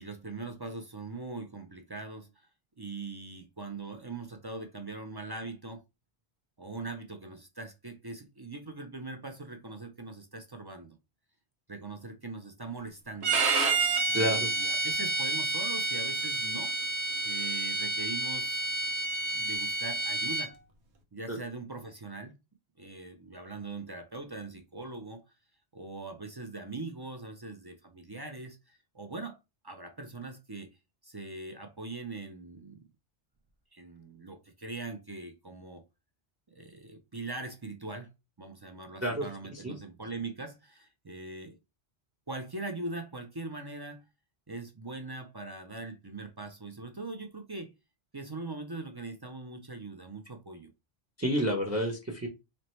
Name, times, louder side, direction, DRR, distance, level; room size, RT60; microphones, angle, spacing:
voice 1, 0.0-2.5 2.8-5.8 6.6-10.9 11.7-13.4 14.1-16.7 17.2-18.6 19.3-20.5 21.1-22.3 22.8-25.2 25.7-29.4 29.6-30.8 31.0-32.8 33.7-35.8 36.5-38.1 38.4-41.6 42.3-44.0 44.5-47.7 48.1-50.7, right 3 dB, 35° right, 0.4 m, -41 dB
Bowed string instrument, 13.2-20.5, right 3 dB, 85° right, 1.1 m, -29 dB
voice 2, 14.1-14.5 21.3-21.4 39.0-39.7 51.2-52.3, equal, 15° right, 0.8 m, -30 dB
4.2 x 2.8 x 3.1 m
omnidirectional pair, 1.1 m